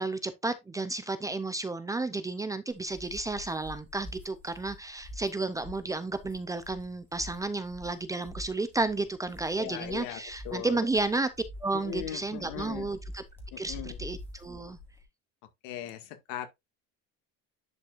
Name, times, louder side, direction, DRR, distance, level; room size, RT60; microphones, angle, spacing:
voice 1, 0.0-11.3 11.6-13.2 13.6-14.8, right 3 dB, 10° right, 0.5 m, -32 dB
sound 1, 2.7-15.0, left 1 dB, 5° left, 2.0 m, -46 dB
voice 2, 9.6-10.8 11.7-12.9 13.5-14.0 15.6-16.5, left 11 dB, 80° left, 2.0 m, -39 dB
10.5 x 5.3 x 2.5 m
cardioid pair, 165°, 32 cm